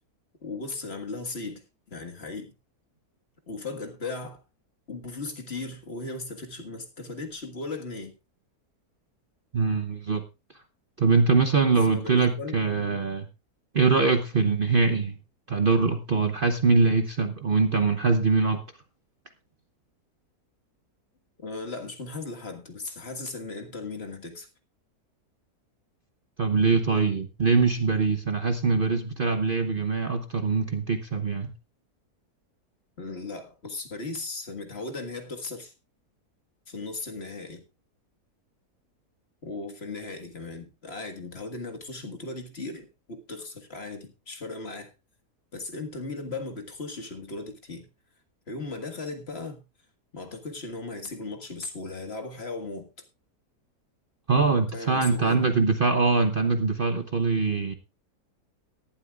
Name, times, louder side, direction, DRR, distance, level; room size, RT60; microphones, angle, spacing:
voice 1, 0.4-2.5 3.5-4.4 4.9-8.1 11.8-13.0 21.4-24.5 33.0-35.7 36.7-37.6 39.4-44.9 45.5-47.9 48.5-49.6 50.1-52.9 54.7-55.5, left 3 dB, 40° left, 1.9 m, -37 dB
voice 2, 9.5-10.2 11.0-13.3 13.7-15.1 15.5-18.6 26.4-31.5 54.3-57.7, right 4 dB, 40° right, 0.9 m, -23 dB
18.0 x 11.5 x 2.4 m
omnidirectional pair, 1.6 m